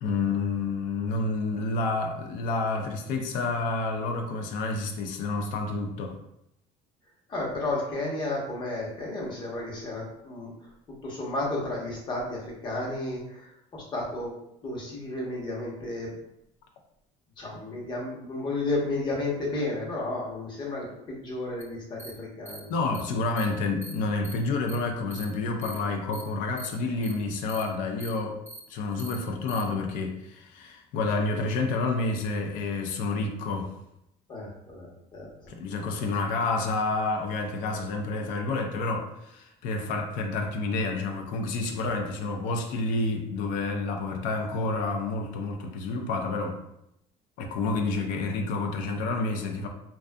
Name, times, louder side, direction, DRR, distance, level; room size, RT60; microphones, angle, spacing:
voice 1, 0.0-6.2 22.7-28.4 28.7-33.8 35.5-46.6 47.4-49.7, left 3 dB, 75° left, 4 dB, 0.4 m, -29 dB
voice 2, 7.3-10.5 10.9-14.3 14.6-16.2 17.4-22.7 34.3-34.9 35.1-35.5, left 2 dB, 35° left, -3 dB, 0.8 m, -32 dB
sound 1, 21.6-21.7 22.0-22.1 22.5-22.6 22.9-23.0 23.4-23.5 23.8-23.9 24.2-24.3 24.7-24.8 25.1-25.2 25.6-25.8 26.1-26.2 26.6-26.7 27.0-27.1 27.5-27.6 28.0-28.1 28.5-28.6 29.0-29.2 29.5-29.6, right 3 dB, 15° right, 0.7 m, -42 dB
2.6 x 2.3 x 2.2 m, 0.80 s
cardioid pair, 135°, 14 cm